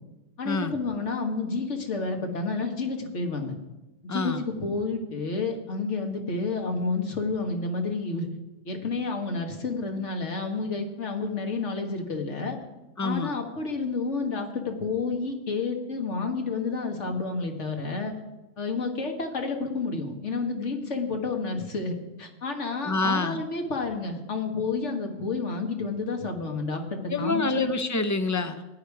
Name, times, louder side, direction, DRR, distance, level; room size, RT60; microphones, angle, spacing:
voice 1, 0.4-3.6 4.0-8.3 8.7-12.6 13.0-18.1 18.6-27.6, left 3 dB, 60° left, 3 dB, 1.9 m, -30 dB
voice 2, 4.1-4.4 13.0-13.3 22.8-23.4 27.1-28.7, left 3 dB, 20° left, 9 dB, 0.5 m, -27 dB
15.0 x 10.0 x 4.8 m, 1.1 s
omnidirectional pair, 1.4 m